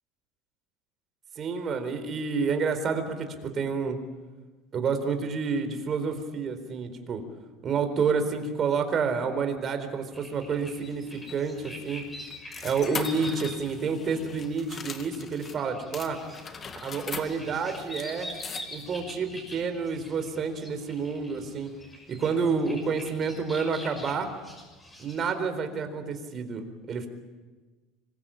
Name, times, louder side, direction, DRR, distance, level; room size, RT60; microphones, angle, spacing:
voice 1, 1.4-4.0 4.7-7.2 7.6-12.1 12.6-16.2 16.8-18.4 18.7-21.7 22.1-24.3 25.0-27.1, right 5 dB, 30° right, 8 dB, 4.1 m, -29 dB
sound 1, 10.1-25.3, left 1 dB, 10° left, 6.5 m, -45 dB
sound 2, 10.8-15.6 15.9-19.0, left 5 dB, 25° left, 2.1 m, -41 dB
26.0 x 22.0 x 8.9 m, 1.3 s
supercardioid pair, 140°, 0 cm